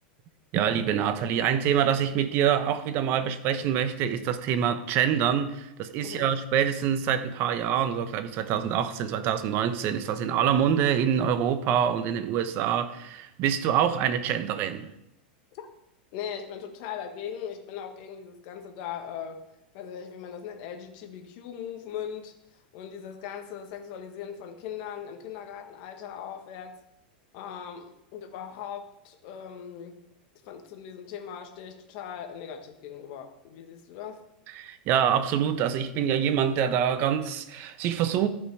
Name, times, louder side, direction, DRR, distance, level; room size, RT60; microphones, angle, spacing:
voice 1, 0.5-14.9 34.6-38.3, right 9 dB, 45° right, 1.0 m, -25 dB
voice 2, 16.1-19.4 19.7-26.8 27.3-30.0 30.4-34.2, left 8 dB, 55° left, 1.6 m, -39 dB
13.5 x 5.6 x 4.9 m
hypercardioid pair, 125°, 5 cm